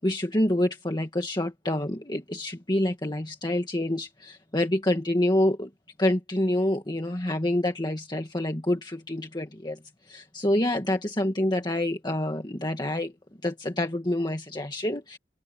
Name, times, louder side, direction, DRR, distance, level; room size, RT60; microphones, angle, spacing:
voice 1, 0.0-5.7 6.0-9.8 10.1-13.1 13.4-15.2, left 1 dB, 25° left, 1.8 m, -27 dB
open air
head